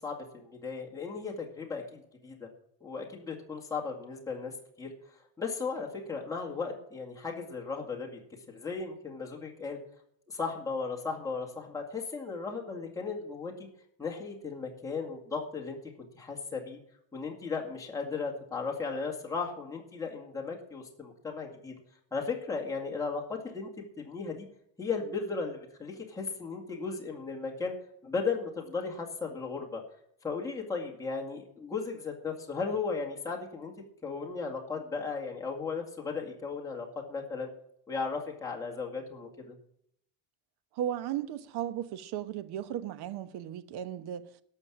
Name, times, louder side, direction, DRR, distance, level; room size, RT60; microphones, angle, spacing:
voice 1, 0.0-2.5 2.8-8.2 8.5-9.8 10.3-13.7 14.0-16.8 17.1-21.7 22.1-23.7 24.0-24.5 24.8-27.7 28.0-29.8 30.2-33.7 34.0-37.5 37.9-39.6, left 4 dB, 10° left, 2.2 m, -36 dB
voice 2, 40.8-44.2, right 11 dB, 60° right, 1.1 m, -35 dB
12.5 x 6.5 x 8.6 m
cardioid pair, 135°, 43 cm